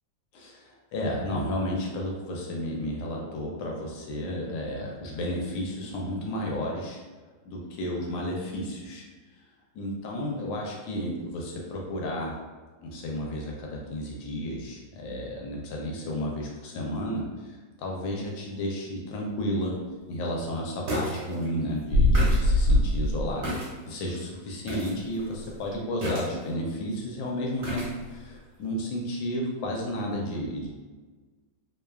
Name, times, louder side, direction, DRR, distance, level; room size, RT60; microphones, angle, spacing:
voice 1, 0.3-7.0 7.5-9.1 9.7-12.3 12.8-19.7 20.1-23.6 23.9-30.7, left 1 dB, 80° left, -1 dB, 1.3 m, -32 dB
sound 1, 19.7-19.8 20.9-21.2 21.5-21.6 21.9-23.7 24.1-24.2 24.7-24.9 25.2-25.5 26.0-26.6 27.6-27.9 28.3-28.4, left 1 dB, 60° right, 1.3 m, -24 dB
3.1 x 2.2 x 2.2 m, 1.4 s
omnidirectional pair, 2.1 m